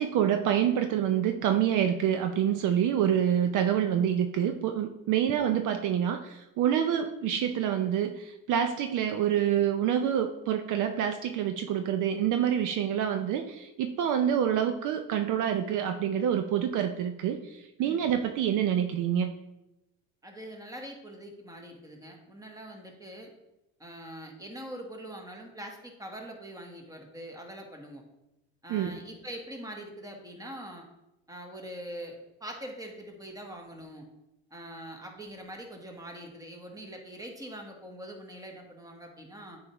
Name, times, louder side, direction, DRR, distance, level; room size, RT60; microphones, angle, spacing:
voice 1, 0.0-19.3 28.7-29.0, right 9 dB, 60° right, 7 dB, 0.6 m, -27 dB
voice 2, 20.2-23.3 23.8-28.0 28.6-30.8 31.3-34.1 34.5-39.6, right 1 dB, 10° right, 2 dB, 1.2 m, -43 dB
8.5 x 4.7 x 3.0 m, 0.92 s
cardioid pair, 110°, 35 cm